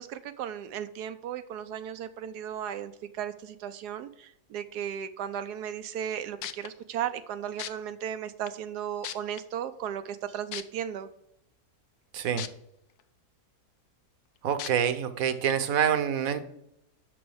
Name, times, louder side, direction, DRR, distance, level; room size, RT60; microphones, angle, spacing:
voice 1, 0.0-11.1, right 9 dB, 85° right, 10 dB, 1.1 m, -36 dB
sound 1, 6.1-6.2 6.4-6.7 7.6-7.7 8.5-8.6 9.0-9.4 10.5-10.6 12.4-12.5 13.0-13.1 14.6-14.7 15.5-15.6, left 11 dB, 75° left, 1.1 m, -36 dB
voice 2, 12.1-12.4 14.4-16.4, right 8 dB, 65° right, 11 dB, 1.2 m, -26 dB
6.2 x 6.1 x 6.3 m, 0.79 s
omnidirectional pair, 1.7 m